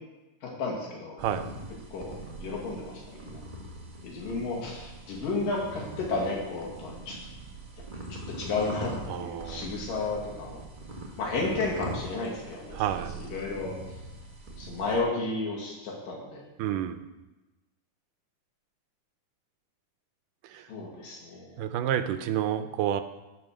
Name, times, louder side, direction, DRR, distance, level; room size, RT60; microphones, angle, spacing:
voice 1, 0.4-1.2 1.9-3.4 4.0-7.2 8.3-10.6 11.2-14.0 14.6-16.4 20.7-21.6, left 3 dB, 80° left, -3 dB, 4.0 m, -33 dB
sound 1, 1.2-15.0, right 2 dB, 60° right, 0.4 m, -42 dB
voice 2, 9.1-9.7 12.7-13.1 16.6-17.0 20.4-20.7 21.6-23.0, right 10 dB, 80° right, 10 dB, 2.2 m, -29 dB
16.5 x 5.5 x 6.2 m, 1.1 s
omnidirectional pair, 3.8 m